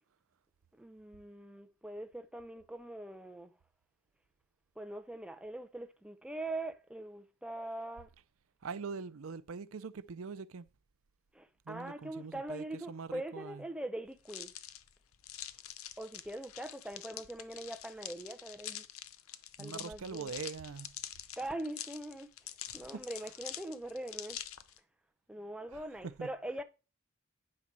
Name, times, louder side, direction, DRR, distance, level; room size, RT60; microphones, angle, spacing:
voice 1, 0.8-3.5 4.8-8.1 11.3-14.5 16.0-18.9 19.6-20.3 21.4-22.3 22.7-24.4 25.3-26.6, right 1 dB, 5° right, 0.6 m, -42 dB
voice 2, 8.6-10.7 11.7-13.6 19.6-20.9 22.9-23.0 26.0-26.3, right 5 dB, 75° right, 0.5 m, -43 dB
sound 1, 14.2-24.8, left 12 dB, 80° left, 0.7 m, -46 dB
9.7 x 3.9 x 6.0 m
head